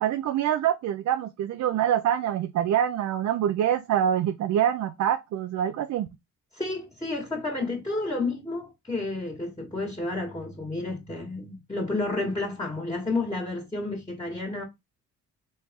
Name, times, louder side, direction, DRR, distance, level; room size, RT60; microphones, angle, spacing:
voice 1, 0.0-6.1, right 10 dB, 65° right, 0.6 m, -25 dB
voice 2, 6.5-14.6, left 2 dB, 15° left, 1.8 m, -31 dB
4.2 x 3.1 x 3.6 m
cardioid pair, 90°, 30 cm